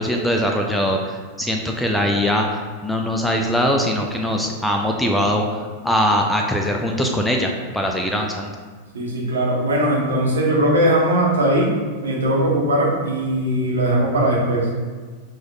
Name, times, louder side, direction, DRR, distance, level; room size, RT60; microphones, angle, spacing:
voice 1, 0.0-2.5 2.8-8.5, equal, 5° left, 1 dB, 0.4 m, -21 dB
voice 2, 8.9-11.7 12.0-14.7, right 1 dB, 65° right, -3 dB, 1.0 m, -19 dB
6.2 x 3.1 x 2.4 m, 1.4 s
figure-of-eight pair, 90°, 0 cm